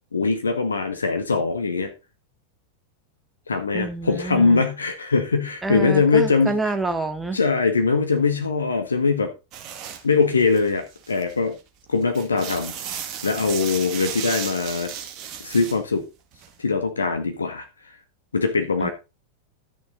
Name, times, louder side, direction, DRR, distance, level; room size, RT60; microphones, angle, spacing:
voice 1, 0.1-1.9 3.5-6.5 7.3-9.3 10.0-11.6 11.9-14.9 15.4-16.0 16.6-17.7 18.3-18.9, left 4 dB, 75° left, 6 dB, 1.7 m, -22 dB
voice 2, 3.7-4.6 5.6-7.4 18.8-18.9, right 3 dB, 10° right, 8 dB, 1.6 m, -27 dB
sound 1, 9.5-10.0 10.4-11.5 11.9-15.8 16.3-16.5, right 8 dB, 35° right, 2.1 m, -34 dB
12.5 x 7.0 x 3.8 m, 0.27 s
figure-of-eight pair, 90°, 0 cm